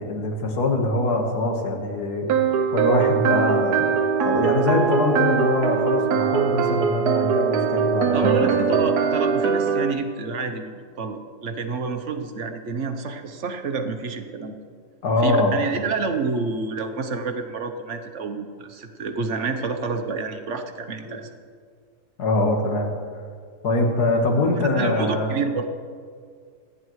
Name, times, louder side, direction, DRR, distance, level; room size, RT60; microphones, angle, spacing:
voice 1, 0.0-2.4 2.7-3.9 4.2-8.8 15.0-15.6 21.1-21.2 22.2-22.9 23.6-25.4, left 2 dB, 75° left, 2 dB, 2.1 m, -23 dB
sound 1, 2.3-9.9, right 6 dB, 80° right, 1.3 m, -21 dB
voice 2, 8.1-14.5 15.2-21.3 24.8-25.7, right 4 dB, 55° right, 7 dB, 1.1 m, -28 dB
26.5 x 9.9 x 3.2 m, 2.1 s
omnidirectional pair, 1.7 m